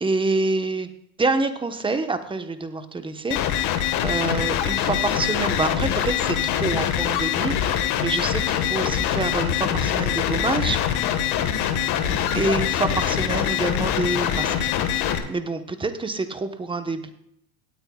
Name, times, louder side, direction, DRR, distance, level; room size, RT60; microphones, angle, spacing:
voice 1, 0.0-0.9 1.2-3.4 4.0-10.8 12.3-14.7 15.3-17.1, right 3 dB, 10° right, 8 dB, 1.1 m, -27 dB
sound 1, 3.3-15.2, left 10 dB, 50° left, 1.6 m, -24 dB
18.0 x 8.9 x 2.4 m, 0.74 s
supercardioid pair, 115°, 49 cm